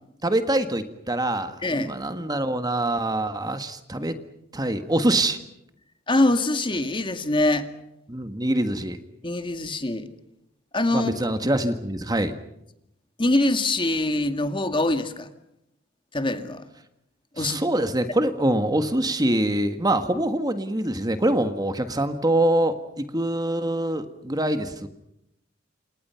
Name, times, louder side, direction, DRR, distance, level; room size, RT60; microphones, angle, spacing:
voice 1, 0.2-4.2 4.5-5.4 8.1-9.0 10.9-12.3 17.4-24.9, right 1 dB, 20° right, 9 dB, 1.6 m, -24 dB
voice 2, 1.6-2.0 6.1-7.7 9.2-10.1 10.7-11.1 13.2-15.3 16.1-16.7 17.4-17.6, left 2 dB, 25° left, 8 dB, 2.1 m, -23 dB
28.5 x 28.0 x 5.8 m, 0.81 s
head